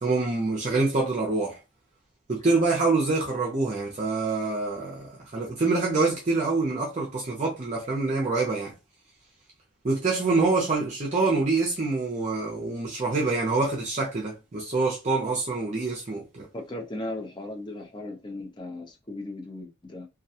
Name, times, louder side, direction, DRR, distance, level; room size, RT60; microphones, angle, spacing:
voice 1, 0.0-1.6 2.3-8.7 9.8-16.5, right 3 dB, 35° right, 0.5 m, -26 dB
voice 2, 16.5-20.1, left 2 dB, 20° left, 0.5 m, -37 dB
2.3 x 2.2 x 2.7 m
head